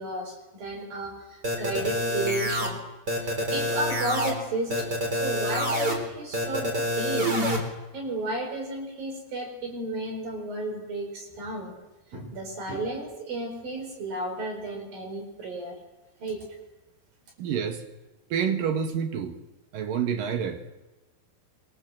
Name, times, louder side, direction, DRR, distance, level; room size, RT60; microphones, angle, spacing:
voice 1, 0.0-2.8 3.2-7.3 7.9-11.7 12.1-15.8 16.2-16.4, right 2 dB, 45° right, 3 dB, 6.4 m, -33 dB
sound 1, 1.4-2.7 3.1-4.3 4.7-5.9 6.3-7.6, equal, 20° right, 3.9 m, -27 dB
voice 2, 17.4-17.8 18.3-19.3 19.7-20.7, right 7 dB, 60° right, 8 dB, 2.4 m, -28 dB
26.5 x 23.5 x 7.6 m, 1.1 s
omnidirectional pair, 5.9 m